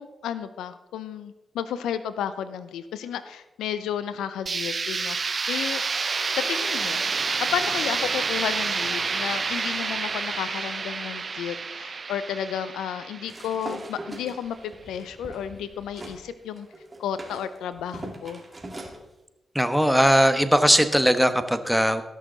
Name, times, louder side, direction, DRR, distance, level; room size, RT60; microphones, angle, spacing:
voice 1, 0.0-5.8 6.3-16.7 17.0-18.4, left 9 dB, 80° left, 13 dB, 0.5 m, -32 dB
sound 1, 4.5-14.2, right 4 dB, 50° right, 0.5 m, -29 dB
sound 2, 13.3-16.2 16.6-19.0, right 1 dB, 30° right, 2.5 m, -40 dB
voice 2, 19.5-22.0, equal, ahead, 10 dB, 1.1 m, -19 dB
17.5 x 6.4 x 3.9 m, 0.99 s
hypercardioid pair, 40°, 0 cm